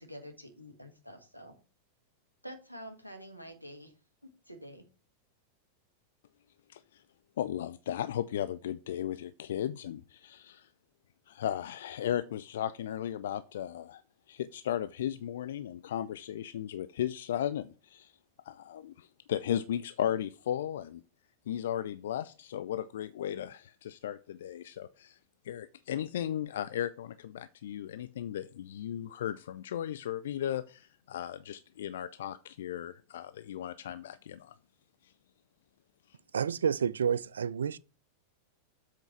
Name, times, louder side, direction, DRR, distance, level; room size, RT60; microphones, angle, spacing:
voice 1, 0.0-1.5 2.4-3.9 4.5-4.9, equal, 90° left, 1.5 m, -47 dB
voice 2, 6.7-7.0 7.4-10.7 11.3-14.0 14.3-18.1 18.4-21.0 21.5-25.2 25.4-34.5 35.0-35.1, left 10 dB, 60° left, 0.4 m, -36 dB
voice 3, 36.3-37.8, right 7 dB, 70° right, 0.3 m, -29 dB
7.6 x 4.4 x 5.8 m
figure-of-eight pair, 90°, 0 cm